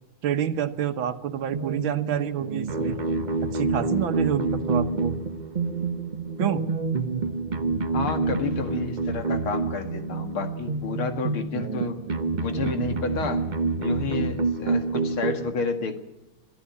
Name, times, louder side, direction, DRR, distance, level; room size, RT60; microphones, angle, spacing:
voice 1, 0.2-3.0 3.5-5.1 6.4-6.7, right 9 dB, 70° right, 10 dB, 1.9 m, -27 dB
sound 1, 1.5-15.5, right 3 dB, 45° right, 0.6 m, -28 dB
voice 2, 7.9-12.0 12.4-13.5 13.8-16.1, left 4 dB, 80° left, 7 dB, 2.8 m, -30 dB
23.5 x 14.0 x 8.5 m, 0.99 s
omnidirectional pair, 2.3 m